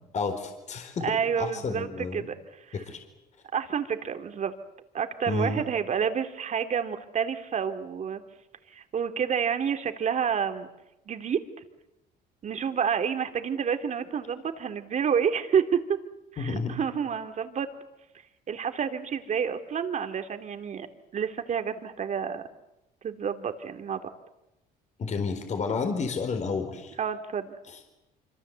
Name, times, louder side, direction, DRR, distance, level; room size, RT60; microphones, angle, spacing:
voice 1, 0.1-2.2 2.7-3.0 5.3-5.6 16.4-16.7 25.0-26.9 27.7-27.8, left 4 dB, 45° left, 5 dB, 4.3 m, -31 dB
voice 2, 1.0-2.4 2.7-2.8 3.5-4.5 4.9-8.2 8.7-10.7 11.1-11.4 12.4-16.0 16.3-17.7 18.5-20.9 21.1-22.4 23.0-24.0 27.0-27.6, right 7 dB, 45° right, 7 dB, 2.6 m, -29 dB
26.0 x 25.5 x 8.1 m, 0.93 s
cardioid pair, 110°, 17 cm